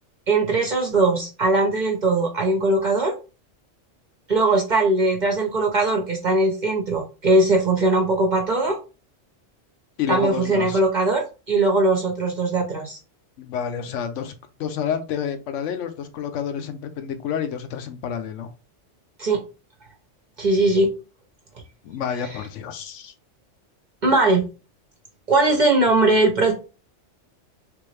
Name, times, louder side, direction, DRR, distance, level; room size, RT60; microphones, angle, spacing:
voice 1, 0.3-3.1 4.3-8.8 10.1-13.0 19.2-19.4 20.4-20.9 24.0-24.4 25.3-26.5, right 2 dB, 45° right, 0.7 m, -20 dB
voice 2, 10.0-10.8 13.4-14.3 14.6-18.5 21.8-23.1, left 8 dB, 80° left, 1.0 m, -29 dB
3.4 x 2.5 x 3.2 m
omnidirectional pair, 1.3 m